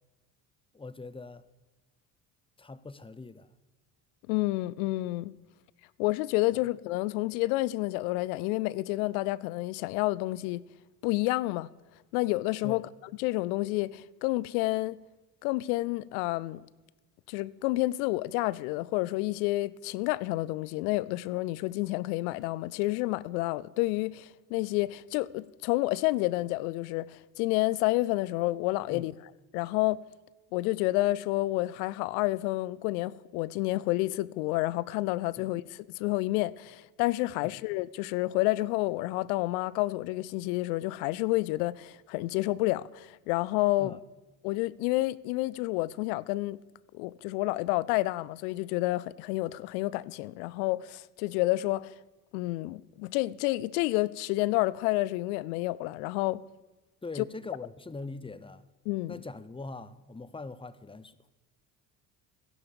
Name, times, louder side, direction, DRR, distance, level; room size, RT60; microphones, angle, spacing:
voice 1, 0.7-1.4 2.6-3.5 12.6-12.9 28.9-29.1 35.4-35.5 37.4-37.6 43.8-44.0 57.0-58.7 59.1-61.3, left 3 dB, 10° left, 0.8 m, -42 dB
voice 2, 4.3-5.3 6.0-10.6 11.0-11.7 12.1-12.8 13.2-15.0 15.4-16.6 17.3-29.1 29.5-30.0 30.5-43.9 44.4-46.6 46.9-51.9 52.3-56.4 58.9-59.2, left 19 dB, 85° left, 0.5 m, -29 dB
15.0 x 11.0 x 6.9 m
hypercardioid pair, 60°, 43 cm